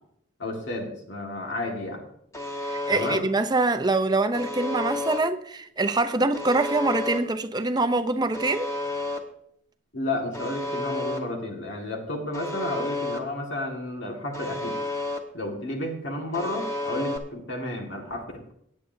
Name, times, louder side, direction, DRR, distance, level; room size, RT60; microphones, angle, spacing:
voice 1, 0.4-2.0 2.9-3.3 9.9-14.8 15.3-18.5, left 1 dB, 70° left, 1.9 m, -32 dB
Alarm, 2.3-3.2 4.3-5.2 6.3-7.2 8.3-9.2 10.3-11.2 12.3-13.2 14.3-15.2 16.3-17.2, left 2 dB, 15° left, 1.3 m, -31 dB
voice 2, 2.7-8.7, right 2 dB, 20° right, 0.6 m, -24 dB
17.5 x 9.9 x 2.7 m
head